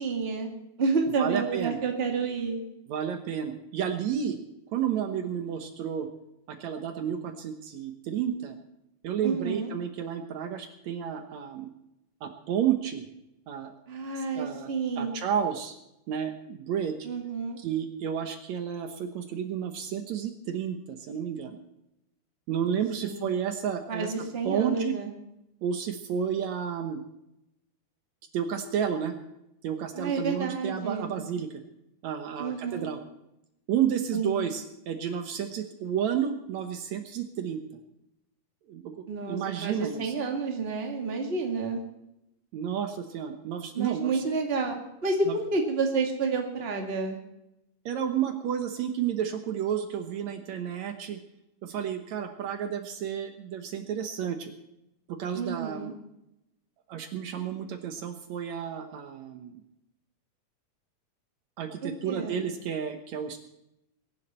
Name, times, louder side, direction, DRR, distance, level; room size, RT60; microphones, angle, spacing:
voice 1, 0.0-2.6 9.2-9.7 13.9-15.1 17.0-17.6 23.0-23.3 23.9-25.1 29.9-31.1 32.4-32.9 34.1-34.4 39.1-41.8 43.7-47.2 55.3-55.9 61.8-62.4, right 4 dB, 20° right, 2 dB, 1.9 m, -30 dB
voice 2, 1.2-1.8 2.9-4.4 4.7-6.1 6.5-8.6 9.0-11.7 12.2-13.1 13.5-13.7 14.2-15.8 16.1-17.1 17.6-21.6 22.5-24.1 24.5-25.0 25.6-27.0 28.3-29.1 29.6-31.6 32.0-33.0 33.7-37.6 38.7-40.1 42.5-44.2 45.3-45.4 47.9-51.2 51.6-54.5 55.1-55.9 56.9-59.5 61.6-63.4, right 8 dB, 70° right, 6 dB, 2.3 m, -31 dB
22.5 x 11.5 x 4.3 m, 0.86 s
omnidirectional pair, 3.5 m